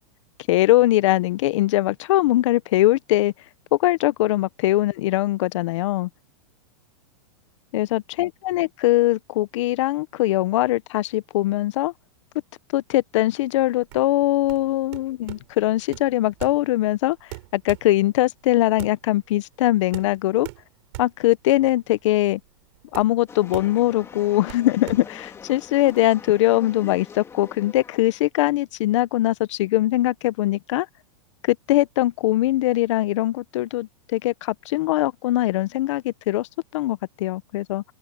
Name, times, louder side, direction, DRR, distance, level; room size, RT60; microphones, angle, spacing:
voice 1, 0.5-3.3 3.7-6.1 7.7-11.9 12.7-17.2 17.5-20.5 21.0-22.4 22.9-30.9 31.4-37.8, left 16 dB, 55° left, 0.8 m, -21 dB
sound 1, 13.8-26.0, right 23 dB, 50° right, 7.0 m, -42 dB
sound 2, 23.3-28.2, left 6 dB, 15° left, 3.0 m, -43 dB
open air
supercardioid pair, 150°, 18 cm